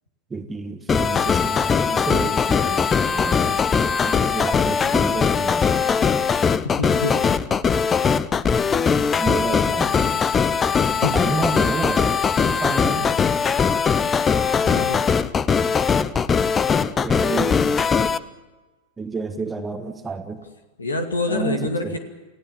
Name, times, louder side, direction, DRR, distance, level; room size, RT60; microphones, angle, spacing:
voice 1, 0.3-3.6 4.1-5.8 9.2-10.2 11.1-13.1 17.0-18.1 19.0-20.4 21.3-21.6 21.8-22.0, right 4 dB, 15° right, 6 dB, 1.4 m, -30 dB
sound 1, 0.9-18.2, left 6 dB, 20° left, 0.8 m, -20 dB
voice 2, 6.5-7.2 11.0-11.1 14.6-15.0 20.8-22.0, left 2 dB, 75° left, 5 dB, 2.3 m, -26 dB
29.5 x 17.0 x 7.3 m, 1.2 s
figure-of-eight pair, 90°, 0 cm